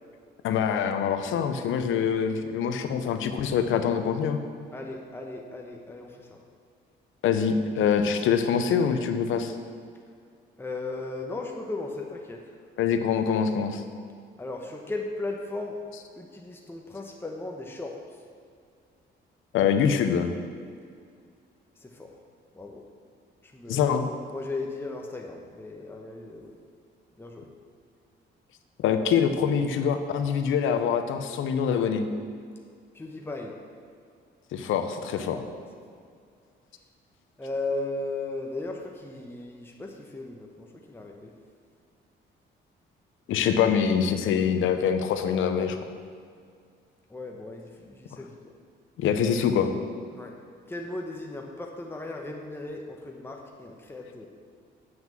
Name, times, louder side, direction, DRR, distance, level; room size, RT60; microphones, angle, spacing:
voice 1, 0.4-4.4 7.2-9.5 12.8-13.8 19.5-20.3 23.7-24.1 28.8-32.0 34.5-35.4 43.3-45.8 49.0-49.7, left 7 dB, 85° left, 8 dB, 0.8 m, -24 dB
voice 2, 4.7-6.4 10.6-12.4 14.4-15.7 16.2-18.0 21.8-22.1 22.5-22.8 23.4-23.9 24.3-26.5 27.2-27.5 32.9-33.5 35.2-35.6 37.4-41.3 47.1-48.5 50.1-50.3 50.7-54.3, left 2 dB, 10° left, 1 dB, 1.0 m, -36 dB
7.7 x 6.0 x 7.5 m, 2.2 s
cardioid pair, 90°, 20 cm